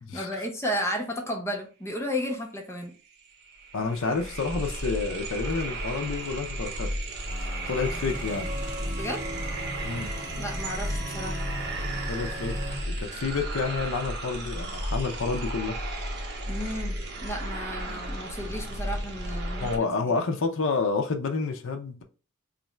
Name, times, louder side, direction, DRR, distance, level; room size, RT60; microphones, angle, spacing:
voice 1, 0.1-2.9 8.9-9.2 10.4-11.4 16.5-19.8, equal, 10° left, 0.7 m, -33 dB
sound 1, 2.8-2.9 3.1-19.8, right 1 dB, 50° right, 0.8 m, -33 dB
voice 2, 3.7-6.9 7.7-8.5 9.8-10.1 12.1-12.6 12.9-15.8 19.6-22.0, left 4 dB, 65° left, 0.6 m, -29 dB
sound 2, 7.3-12.8, equal, 15° right, 1.8 m, -38 dB
3.1 x 2.5 x 4.3 m
head